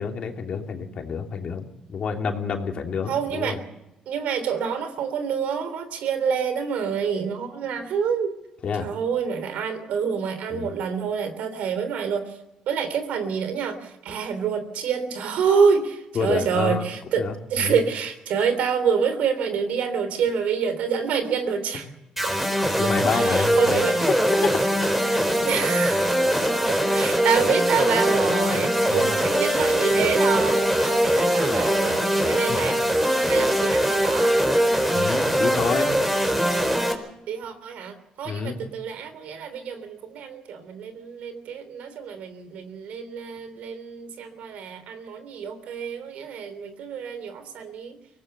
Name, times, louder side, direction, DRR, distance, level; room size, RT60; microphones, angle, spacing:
voice 1, 0.0-3.6 8.6-8.9 10.5-10.7 16.1-16.9 17.2-17.8 22.8-23.8 24.4-24.5 25.3-25.5 28.9-29.1 34.9-35.9 38.2-38.6, left 6 dB, 50° left, 3 dB, 3.0 m, -28 dB
voice 2, 3.1-3.6 4.1-8.3 8.8-12.4 12.7-21.9 22.2-24.0 25.4-26.0 26.7-32.8 33.3-34.4 37.3-48.0, right 6 dB, 75° right, 10 dB, 3.4 m, -27 dB
sound 1, 22.2-36.9, equal, 5° right, 4.2 m, -22 dB
23.5 x 18.0 x 6.9 m, 0.93 s
cardioid pair, 110°, 2 cm